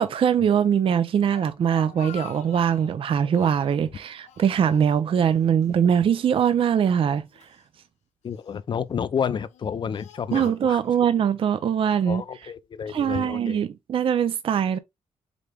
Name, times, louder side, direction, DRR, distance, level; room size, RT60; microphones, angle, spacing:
voice 1, 0.0-7.3 10.3-12.2 12.9-14.8, right 8 dB, 50° right, 0.4 m, -22 dB
Speech, 1.1-3.0 3.3-3.9 4.3-5.4 5.6-5.8 6.6-7.6 8.3-8.7 9.4-11.1, left 8 dB, 85° left, 0.8 m, -45 dB
voice 2, 8.2-10.8 12.1-13.6, left 7 dB, 45° left, 0.4 m, -30 dB
5.0 x 3.3 x 2.3 m
cardioid pair, 85°, 12 cm